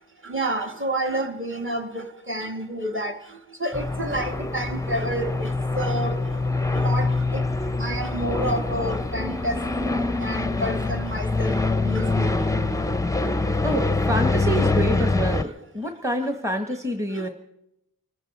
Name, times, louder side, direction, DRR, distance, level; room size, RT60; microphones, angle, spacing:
voice 1, 0.3-3.1 3.6-5.5 5.8-6.1 6.8-7.1 7.3-7.4 7.8-9.6 10.2-11.5 11.9-12.3, right 1 dB, 30° right, 1.7 m, -29 dB
sound 1, 3.7-15.4, left 3 dB, 10° left, 0.6 m, -24 dB
voice 2, 13.6-17.3, right 1 dB, 10° right, 1.2 m, -27 dB
24.5 x 14.0 x 4.1 m
wide cardioid pair, 60°, 38 cm